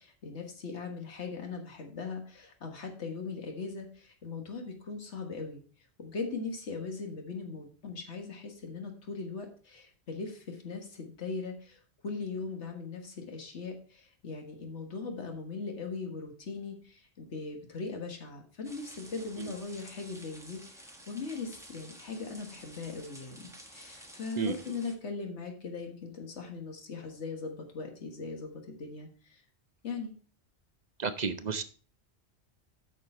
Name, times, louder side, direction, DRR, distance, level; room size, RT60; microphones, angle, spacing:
voice 1, 0.0-5.6 6.0-29.4 29.8-30.2, left 4 dB, 85° left, 3 dB, 1.8 m, -39 dB
sound 1, 18.6-24.9, equal, 5° right, 1.4 m, -51 dB
voice 2, 24.4-24.8 31.0-31.6, right 5 dB, 45° right, 10 dB, 0.7 m, -33 dB
8.6 x 6.2 x 4.3 m, 0.41 s
omnidirectional pair, 1.1 m